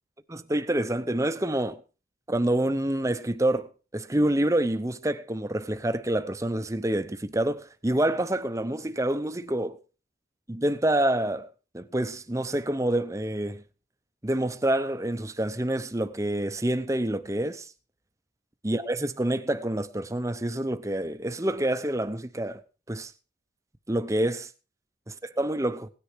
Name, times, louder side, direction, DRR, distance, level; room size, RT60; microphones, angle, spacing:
voice 1, 0.3-1.8 2.3-9.8 10.5-11.5 11.7-13.6 14.2-17.7 18.6-22.6 22.9-23.1 23.9-24.5 25.1-25.9, right 1 dB, 15° right, 0.8 m, -27 dB
17.5 x 10.0 x 4.7 m
head